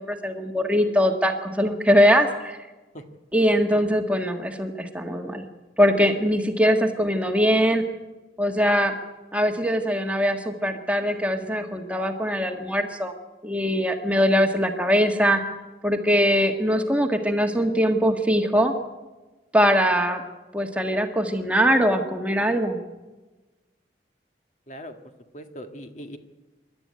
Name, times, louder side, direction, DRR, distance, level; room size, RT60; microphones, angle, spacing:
voice 1, 0.0-2.6 3.3-5.4 5.8-7.8 8.4-8.9 9.3-13.1 13.4-15.4 15.8-18.7 19.5-20.2 20.5-22.8, equal, 5° right, 4 dB, 1.5 m, -22 dB
voice 2, 25.3-26.2, equal, 40° left, 6 dB, 1.7 m, -39 dB
27.0 x 12.0 x 9.6 m, 1.2 s
head